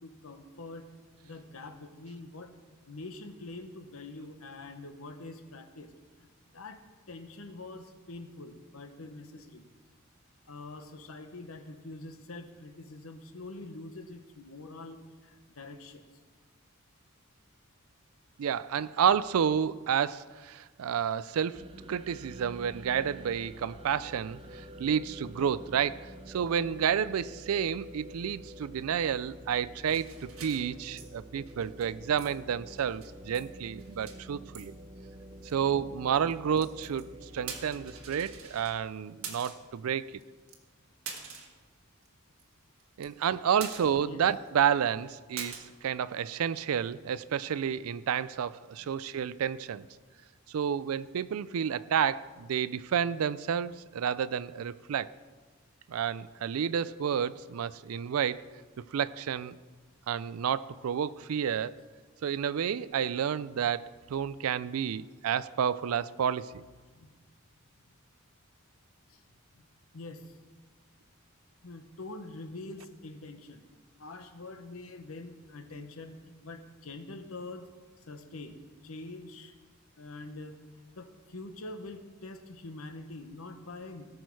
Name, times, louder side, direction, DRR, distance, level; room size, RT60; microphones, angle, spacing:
voice 1, 0.0-0.9 1.2-2.5 2.9-5.9 6.2-6.3 6.5-9.7 10.5-16.0 44.0-44.2 48.8-48.9 66.9-67.2 69.1-69.2 69.5-69.7 69.9-70.4 71.6-73.6 74.0-77.7 78.1-78.5 78.8-79.5 80.0-80.6 80.9-84.1, left 2 dB, 80° left, 1.1 m, -45 dB
voice 2, 18.4-21.6 21.9-34.7 35.4-40.1 43.0-49.9 50.5-55.1 55.9-58.4 58.9-59.6 60.1-61.8 62.2-66.6, right 8 dB, 90° right, 0.4 m, -30 dB
sound 1, 21.5-38.4, right 1 dB, 25° right, 0.6 m, -48 dB
sound 2, 29.8-31.1 31.4-31.9 32.2-32.3 32.6-33.5 33.7-34.2 34.5-34.7 35.4-35.5 36.1-37.0 37.4-38.8 39.2-39.7 40.2-40.3 40.5-40.6 41.1-41.6 42.0-42.1 42.4-42.5 42.8-43.3 43.6-44.2 44.5-44.6 45.4-45.6, right 6 dB, 70° right, 1.5 m, -44 dB
18.0 x 6.4 x 4.7 m
head